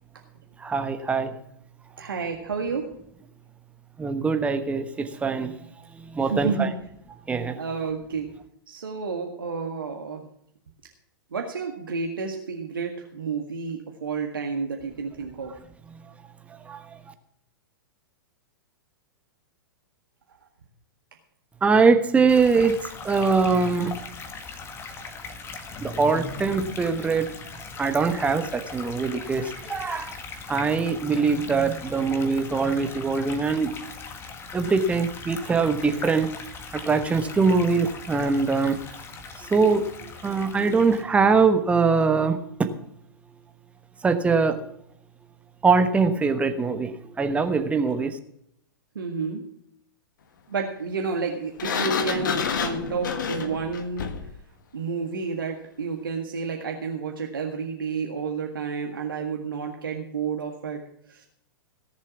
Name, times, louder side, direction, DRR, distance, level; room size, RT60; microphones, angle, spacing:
voice 1, 0.6-1.3 4.0-5.5 6.1-6.7 7.3-7.6 16.6-16.8 21.6-22.8 23.0-24.0 25.8-27.3 27.8-30.1 30.5-33.7 34.5-36.4 36.7-38.8 39.5-42.7 44.0-44.6 45.6-48.2, right 4 dB, 10° right, 8 dB, 1.2 m, -22 dB
voice 2, 2.0-2.9 6.3-6.7 7.6-8.3 8.7-10.3 11.3-15.5 49.0-49.4 50.5-54.1 54.7-60.8 61.1-61.3, right 5 dB, 70° right, 2 dB, 1.7 m, -30 dB
sound 1, 22.3-41.0, left 4 dB, 20° left, 1.7 m, -39 dB
Sliding door, 51.6-54.4, left 6 dB, 60° left, 1.5 m, -28 dB
18.0 x 7.5 x 6.0 m, 0.72 s
figure-of-eight pair, 100°, 12 cm